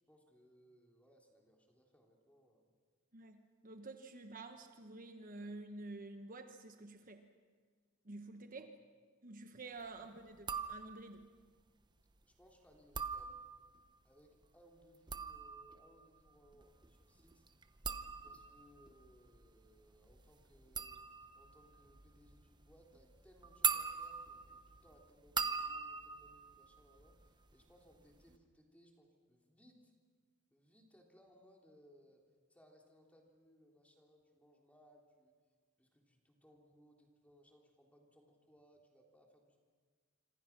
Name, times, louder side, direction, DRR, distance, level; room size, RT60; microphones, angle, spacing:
voice 1, 0.1-2.7 8.5-8.7 12.2-13.4 14.0-17.6 18.2-21.1 21.3-29.9 30.5-32.2 32.5-35.3 35.8-39.6, equal, 5° left, 1 dB, 3.5 m, -66 dB
voice 2, 3.1-7.2 8.0-8.7 9.2-11.3, right 2 dB, 45° right, 6 dB, 1.2 m, -50 dB
sound 1, 10.4-11.2 12.7-13.8 14.8-27.5 27.8-28.4, right 6 dB, 20° right, 0.9 m, -42 dB
26.5 x 26.0 x 6.1 m, 1.5 s
head